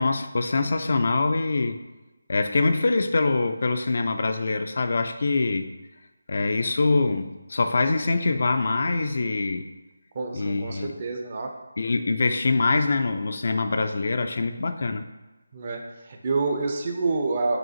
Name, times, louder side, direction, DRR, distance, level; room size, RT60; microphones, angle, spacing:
voice 1, 0.0-1.8 2.3-5.7 6.3-9.7 10.3-10.9 11.8-15.0, left 3 dB, 55° left, 8 dB, 0.3 m, -24 dB
voice 2, 10.1-11.5 15.5-17.6, right 3 dB, 40° right, 3 dB, 0.5 m, -28 dB
6.1 x 2.5 x 2.8 m, 1.1 s
figure-of-eight pair, 160°, 0 cm